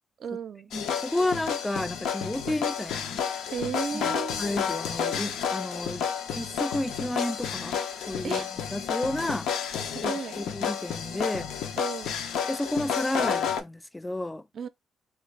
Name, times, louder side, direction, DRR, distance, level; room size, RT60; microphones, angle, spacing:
voice 1, 0.2-0.7 3.5-4.4 8.2-8.5 9.9-10.4 11.8-12.1 14.5-14.7, right 6 dB, 55° right, 0.4 m, -34 dB
sound 1, 0.7-13.6, left 7 dB, 85° left, 0.5 m, -31 dB
voice 2, 0.7-3.2 3.9-4.1 4.4-6.1 6.3-9.5 10.0-11.5 12.5-14.4, left 1 dB, 10° left, 0.3 m, -31 dB
3.3 x 2.3 x 3.2 m
cardioid pair, 90°, 0 cm